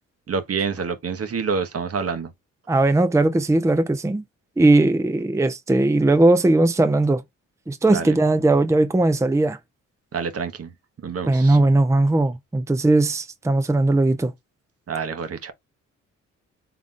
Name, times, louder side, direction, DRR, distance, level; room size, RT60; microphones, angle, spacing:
voice 1, 0.3-2.3 7.9-8.1 10.1-10.7 11.0-11.6 14.9-15.5, right 5 dB, 45° right, 0.9 m, -27 dB
voice 2, 2.7-4.2 4.6-7.2 7.7-9.6 11.3-14.3, right 2 dB, 10° right, 0.6 m, -18 dB
3.8 x 3.4 x 2.6 m
supercardioid pair, 55°, 32 cm